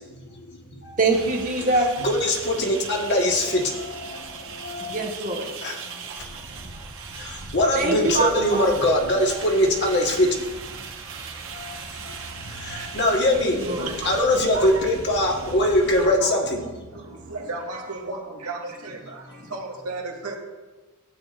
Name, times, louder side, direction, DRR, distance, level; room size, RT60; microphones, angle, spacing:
voice 1, 1.0-1.9 4.8-5.5 7.7-8.7 13.3-13.9, right 2 dB, 35° right, -1 dB, 1.6 m, -24 dB
sound 1, 1.1-16.1, right 4 dB, 60° right, 1.3 m, -38 dB
voice 2, 2.0-3.6 4.6-5.0 5.6-5.7 7.5-10.3 12.6-13.6 14.0-16.6, left 1 dB, 50° left, 0 dB, 1.5 m, -21 dB
voice 3, 13.8-14.1 14.5-14.8 15.3-20.4, right 3 dB, 85° right, -1 dB, 1.8 m, -35 dB
13.5 x 8.8 x 2.5 m, 1.2 s
head